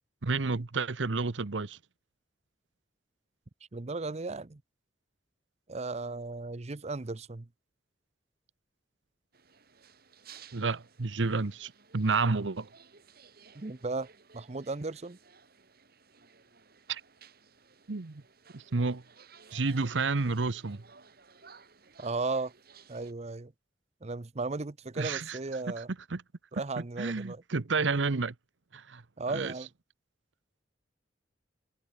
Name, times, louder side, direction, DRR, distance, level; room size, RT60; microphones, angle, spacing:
voice 1, 0.2-1.8 10.5-12.7 16.9-17.0 17.9-18.2 18.5-19.0 19.5-20.8 25.0-25.4 26.1-26.2 27.0-28.3 28.7-29.0 29.3-29.5, right 4 dB, 80° right, 0.9 m, -30 dB
voice 2, 3.7-4.6 5.7-7.5 13.5-14.1 14.3-15.2 22.0-22.5 22.9-23.5 24.0-25.9 26.5-27.4 29.2-29.7, right 3 dB, 35° right, 0.7 m, -35 dB
sound 1, 9.3-23.1, right 6 dB, 55° right, 3.4 m, -57 dB
head